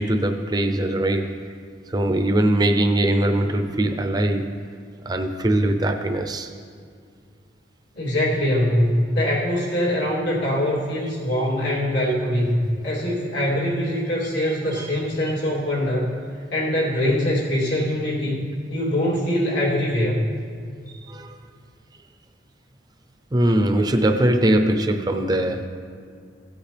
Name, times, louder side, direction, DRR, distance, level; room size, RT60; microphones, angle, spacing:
voice 1, 0.0-1.4 1.9-4.5 5.1-6.5 14.7-14.9 21.1-21.4 23.3-25.7, right 1 dB, 20° right, 6 dB, 0.5 m, -21 dB
voice 2, 7.9-16.1 16.5-18.4 18.7-20.3, left 1 dB, 75° left, -5 dB, 3.0 m, -23 dB
16.0 x 8.2 x 3.4 m, 2.1 s
head